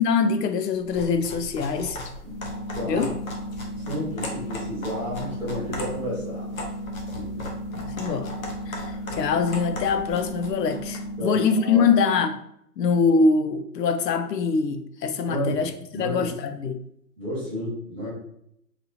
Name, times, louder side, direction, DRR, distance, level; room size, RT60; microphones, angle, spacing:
voice 1, 0.0-2.0 2.8-3.1 7.7-8.3 8.7-12.4 12.8-15.7 16.0-16.8, left 5 dB, 85° left, 0.6 m, -23 dB
sound 1, 0.8-11.1, left 1 dB, 55° left, 1.0 m, -38 dB
sound 2, 2.2-12.3, equal, 25° right, 0.6 m, -35 dB
voice 2, 2.7-3.1 3.9-6.5 7.1-7.4 11.2-11.8 15.2-15.6 15.9-16.3 17.2-18.1, equal, 5° left, 1.0 m, -31 dB
4.1 x 2.9 x 2.7 m
hypercardioid pair, 175°, 48 cm